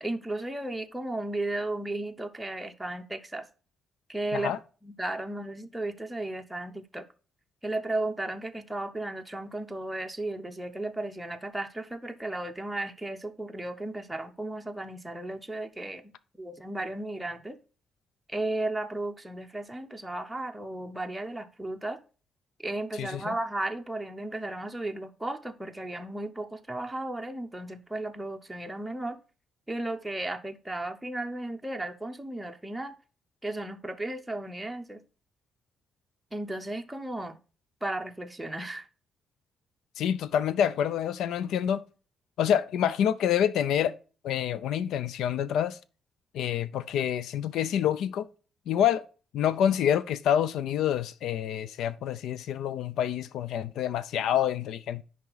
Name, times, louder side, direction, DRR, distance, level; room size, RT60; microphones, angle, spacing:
voice 1, 0.0-3.5 4.1-4.5 4.8-7.0 7.6-16.0 16.4-17.6 18.3-22.0 22.6-29.2 29.7-32.9 33.4-35.0 36.3-37.4 37.8-38.9, right 2 dB, 5° right, 0.6 m, -34 dB
voice 2, 23.0-23.3 40.0-41.8 42.4-43.9 44.2-45.8 46.3-48.3 48.7-49.1 49.3-55.0, left 9 dB, 85° left, 0.5 m, -27 dB
10.5 x 3.7 x 4.0 m
cardioid pair, 170°, 0 cm